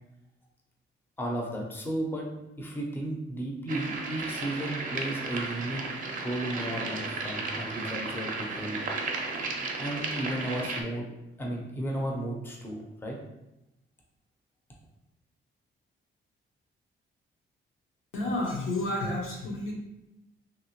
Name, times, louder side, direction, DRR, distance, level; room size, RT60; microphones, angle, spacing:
voice 1, 1.2-2.3 2.6-5.8 6.2-8.8 9.8-11.1 11.4-13.2, right 1 dB, 10° left, -1 dB, 0.5 m, -34 dB
sound 1, 3.7-10.8, right 3 dB, 40° right, 0.5 m, -34 dB
voice 2, 18.1-19.7, left 1 dB, 85° left, -2 dB, 0.9 m, -30 dB
3.0 x 2.8 x 2.9 m, 0.91 s
cardioid pair, 140°, 21 cm